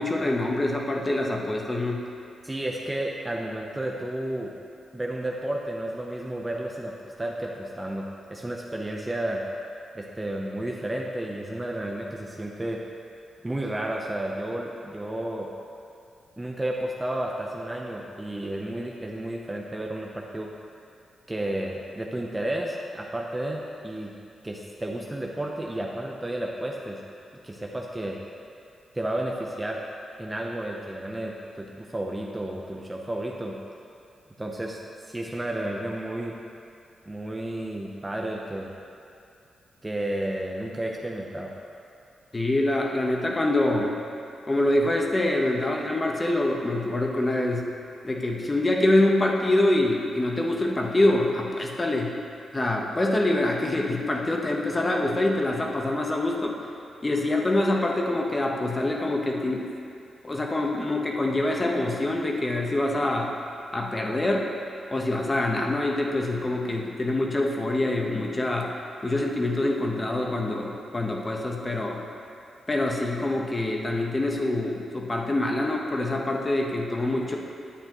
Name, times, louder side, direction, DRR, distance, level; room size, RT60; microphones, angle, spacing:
voice 1, 0.0-2.0 42.3-44.0 44.5-47.7 48.0-52.2 52.5-56.6 57.0-59.7 60.2-63.3 63.7-64.5 64.9-68.7 69.0-72.0 72.7-77.4, left 1 dB, 25° left, 0 dB, 1.1 m, -25 dB
voice 2, 2.4-4.5 4.9-9.4 9.9-12.8 13.4-15.5 16.4-20.5 21.3-24.1 24.4-27.0 27.4-28.2 28.9-29.8 30.2-33.6 34.4-34.8 35.1-36.4 37.1-38.7 39.8-41.5, right 1 dB, 15° right, -1 dB, 0.7 m, -32 dB
10.0 x 8.5 x 3.0 m, 2.5 s
cardioid pair, 90°, 0 cm